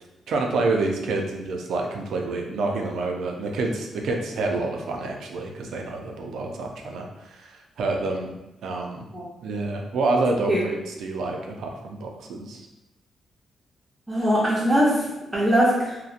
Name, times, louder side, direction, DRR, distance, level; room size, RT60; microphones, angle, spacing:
voice 1, 0.3-8.3 8.6-9.1 9.4-12.7, right 3 dB, 75° right, 2 dB, 0.4 m, -28 dB
voice 2, 14.1-16.0, equal, 15° right, -7 dB, 0.6 m, -21 dB
2.7 x 2.1 x 2.4 m, 0.97 s
cardioid pair, 115°, 0 cm